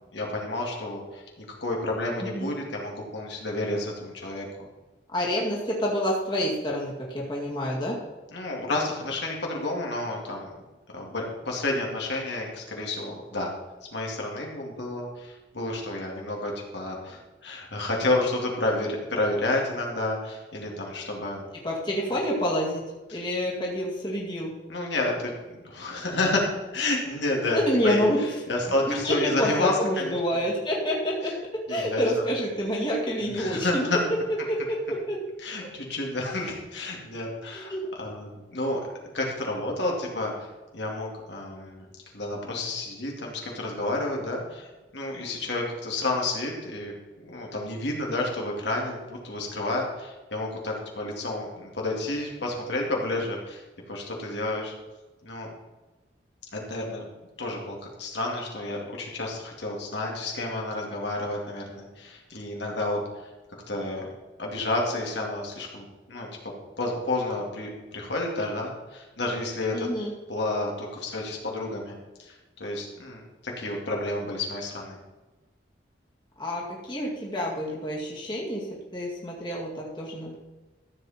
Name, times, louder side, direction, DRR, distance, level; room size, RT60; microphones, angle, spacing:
voice 1, 0.1-4.5 8.3-10.5 10.9-13.5 13.9-21.5 23.1-23.2 24.7-26.5 26.7-30.2 31.2-31.3 31.7-32.2 33.3-34.0 35.4-38.8 39.1-40.5 40.7-41.9 42.1-46.9 47.2-53.6 53.9-54.7 55.2-55.5 56.5-57.1 57.4-63.3 63.7-64.0 64.4-66.3 66.8-69.9 70.3-75.0, left 2 dB, 70° left, -1 dB, 2.5 m, -30 dB
voice 2, 5.1-8.0 21.6-22.8 23.1-24.5 27.3-28.3 28.7-31.3 31.7-33.8 34.5-35.2 35.6-35.7 37.5-37.8 69.7-70.1 76.4-78.6 78.9-80.4, equal, 25° left, -4 dB, 2.1 m, -28 dB
14.0 x 8.1 x 4.3 m, 1.2 s
head